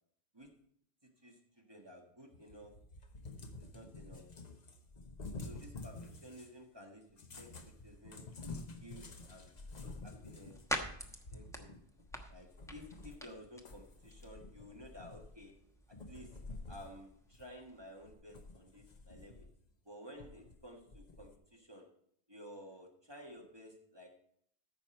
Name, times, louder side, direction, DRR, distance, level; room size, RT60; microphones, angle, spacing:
voice 1, 1.0-2.7 3.6-4.3 5.4-7.0 7.4-8.2 8.8-10.5 11.3-11.7 12.3-15.5 15.9-16.4 16.7-19.5 19.8-21.8 22.3-24.1, equal, 20° right, 1 dB, 1.6 m, -54 dB
Cat, 2.3-6.6 7.1-13.3 13.6-15.5 15.9-17.0 17.3-17.5 18.0-19.6 20.2-21.4, left 3 dB, 40° left, 1.0 m, -50 dB
sound 1, 9.5-18.1, equal, 5° left, 1.0 m, -47 dB
14.0 x 6.0 x 4.3 m, 0.68 s
omnidirectional pair, 1.2 m